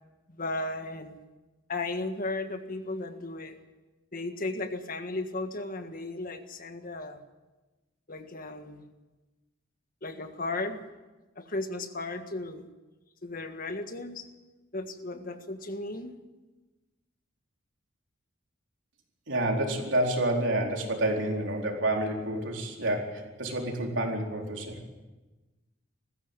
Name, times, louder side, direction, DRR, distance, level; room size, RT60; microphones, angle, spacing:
voice 1, 0.3-1.1 1.7-3.6 4.1-7.2 8.1-8.8 10.0-10.8 11.3-12.7 13.2-14.3 14.7-16.2, left 2 dB, 50° left, 7 dB, 1.7 m, -35 dB
voice 2, 19.3-24.7, right 1 dB, 70° right, 1 dB, 4.4 m, -29 dB
20.0 x 15.5 x 9.1 m, 1.2 s
head